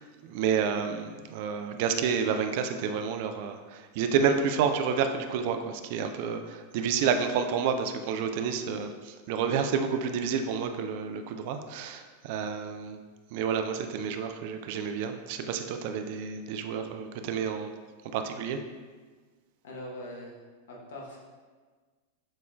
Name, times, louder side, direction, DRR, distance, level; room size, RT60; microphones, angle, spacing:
voice 1, 0.0-13.0 13.3-17.7 18.1-18.6, right 6 dB, 50° right, 7 dB, 0.3 m, -29 dB
voice 2, 19.6-20.3 20.7-21.2, left 1 dB, 60° left, -3 dB, 1.0 m, -41 dB
7.2 x 2.9 x 2.4 m, 1.4 s
figure-of-eight pair, 90°, 0 cm